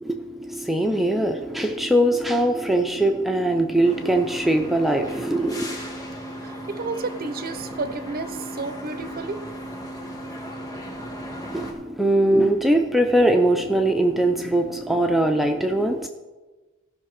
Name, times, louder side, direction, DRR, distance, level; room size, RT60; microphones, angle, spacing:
voice 1, 0.0-5.8 11.5-16.1, right 1 dB, ahead, 4 dB, 0.5 m, -21 dB
sound 1, 3.8-11.7, equal, 20° left, 1.5 m, -36 dB
voice 2, 6.4-9.5, right 3 dB, 45° right, 12 dB, 0.6 m, -31 dB
15.0 x 5.8 x 4.8 m, 1.2 s
head